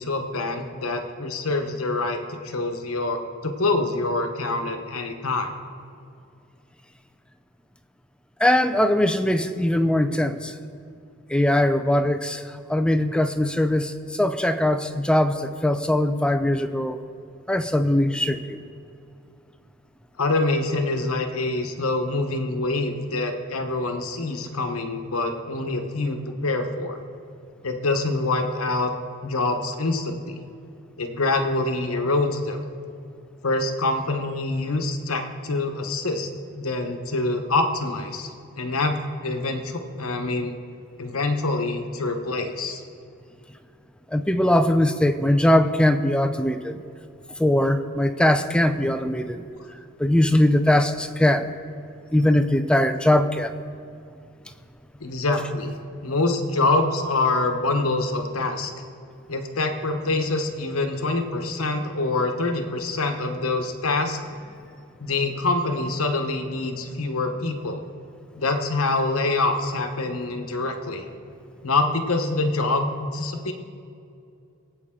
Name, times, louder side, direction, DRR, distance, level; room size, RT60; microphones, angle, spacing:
voice 1, 0.0-5.5 20.2-27.0 27.6-28.9 29.2-30.4 31.0-32.6 33.4-36.3 36.5-38.3 38.6-40.5 41.0-42.8 55.0-55.7 56.0-58.7 59.3-64.2 65.0-67.8 68.3-71.0 71.6-73.5, left 2 dB, 80° left, 5 dB, 1.1 m, -25 dB
voice 2, 8.4-10.5 11.3-12.4 12.7-17.0 17.5-18.6 44.1-46.8 47.4-49.4 50.0-51.5 52.1-53.5, left 1 dB, 5° left, 8 dB, 0.4 m, -21 dB
21.0 x 8.5 x 3.8 m, 2.5 s
head